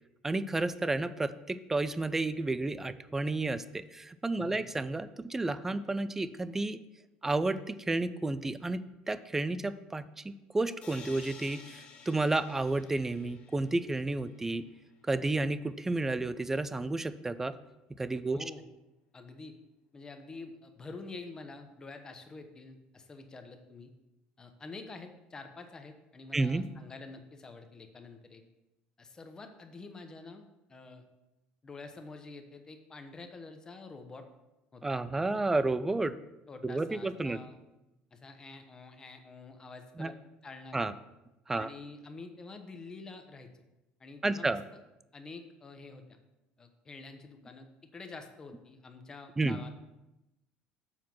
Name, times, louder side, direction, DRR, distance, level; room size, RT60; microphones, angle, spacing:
voice 1, 0.2-6.8 7.2-14.7 15.1-17.6 18.0-18.4 26.3-26.7 34.8-36.1 36.6-37.4 40.0-40.1 40.7-40.9 41.5-41.7 44.2-44.6 49.4-49.6, right 2 dB, 10° right, 14 dB, 0.3 m, -31 dB
sound 1, 10.8-14.6, left 5 dB, 45° left, 1.6 m, -52 dB
voice 2, 18.3-18.6 19.1-19.5 19.9-23.9 24.4-28.4 29.0-31.0 31.6-34.3 34.7-35.5 36.5-37.6 38.1-40.2 40.4-40.9 41.5-43.5 44.0-44.5 45.1-46.2 46.6-49.7, left 3 dB, 20° left, 6 dB, 0.9 m, -47 dB
7.3 x 4.4 x 6.0 m, 0.97 s
cardioid pair, 130°, 3 cm